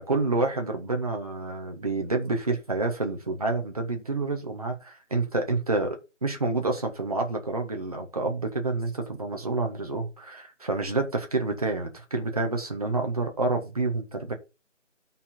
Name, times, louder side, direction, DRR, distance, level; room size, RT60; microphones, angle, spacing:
voice 1, 0.1-14.3, right 3 dB, 30° right, 1.5 m, -28 dB
11.5 x 5.7 x 4.3 m
figure-of-eight pair, 165°, 38 cm